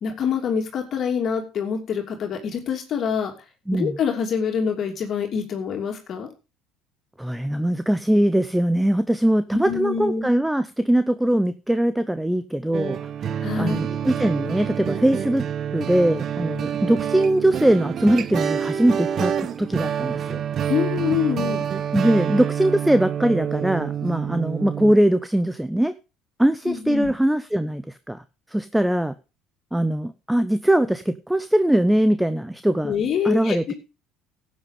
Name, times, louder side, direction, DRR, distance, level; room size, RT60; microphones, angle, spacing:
voice 1, 0.0-3.3 3.7-6.3 9.6-10.3 13.4-13.9 20.7-21.6 26.7-27.1 32.8-33.6, left 7 dB, 50° left, 3 dB, 2.8 m, -25 dB
voice 2, 3.7-4.0 7.2-13.0 13.6-15.4 15.7-20.4 21.9-25.9 26.4-28.2 28.5-29.1 29.7-32.9 33.2-33.7, right 1 dB, 5° right, 13 dB, 0.8 m, -21 dB
sound 1, 12.7-24.9, right 8 dB, 50° right, 1.0 m, -27 dB
12.0 x 8.4 x 5.2 m, 0.30 s
hypercardioid pair, 70°, 0 cm